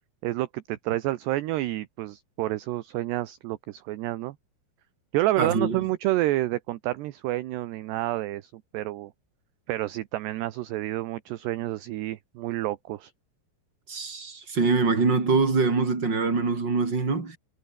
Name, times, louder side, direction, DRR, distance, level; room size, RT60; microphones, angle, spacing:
voice 1, 0.2-4.4 5.1-9.1 9.7-13.1, right 16 dB, 75° right, 2.9 m, -29 dB
voice 2, 5.4-5.8 13.9-17.4, right 4 dB, 25° right, 4.7 m, -24 dB
omnidirectional pair, 5.4 m